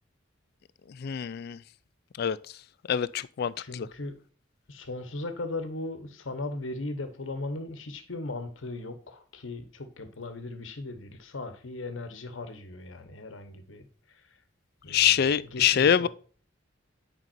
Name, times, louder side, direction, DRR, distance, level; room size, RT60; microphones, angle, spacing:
voice 1, 1.0-1.6 2.2-2.4 2.9-3.9 14.9-16.1, left 9 dB, 55° left, 0.3 m, -25 dB
voice 2, 3.6-4.1 4.7-13.9 14.8-15.1 15.5-16.1, left 2 dB, 85° left, 1.1 m, -37 dB
9.0 x 5.3 x 2.6 m
head